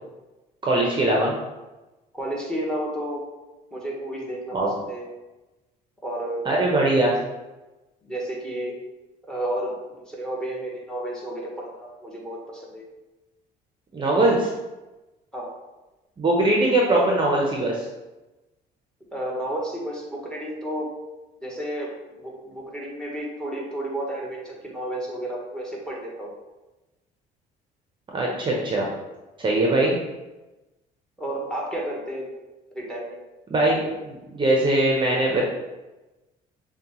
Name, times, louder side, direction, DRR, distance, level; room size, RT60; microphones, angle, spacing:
voice 1, 0.6-1.3 4.5-4.7 6.4-7.1 13.9-14.5 16.2-17.9 28.1-28.9 29.4-30.0 33.5-35.5, right 1 dB, 30° right, -2 dB, 0.7 m, -21 dB
voice 2, 2.1-3.2 3.7-5.1 6.0-6.5 7.1-7.2 8.0-8.8 9.3-12.9 15.3-15.5 19.1-20.9 21.4-21.9 22.2-26.3 31.2-32.3 32.7-33.2, right 1 dB, 5° left, -2 dB, 1.2 m, -32 dB
6.4 x 2.3 x 3.0 m, 1.1 s
cardioid pair, 110°, 17 cm